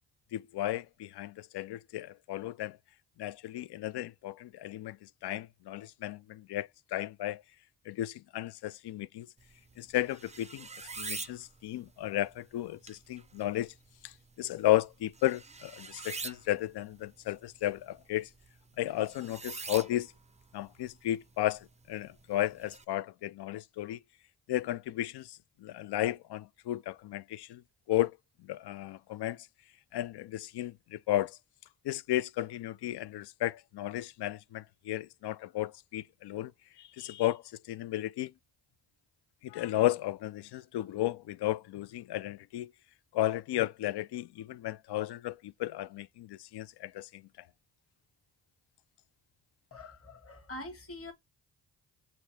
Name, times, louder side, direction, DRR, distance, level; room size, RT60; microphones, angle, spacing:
voice 1, 0.3-2.8 3.2-7.4 7.9-9.3 9.8-10.7 11.0-13.7 14.0-14.1 14.4-18.3 18.8-20.1 20.5-24.0 24.5-27.6 27.9-28.2 28.4-29.5 29.9-31.4 31.8-36.5 36.8-38.3 39.4-42.7 43.1-47.2, left 14 dB, 55° left, 0.5 m, -34 dB
sound 1, 9.4-22.8, right 4 dB, 15° right, 0.4 m, -47 dB
voice 2, 49.7-51.1, left 1 dB, 25° left, 1.3 m, -44 dB
4.5 x 2.4 x 4.0 m
supercardioid pair, 40°, 50 cm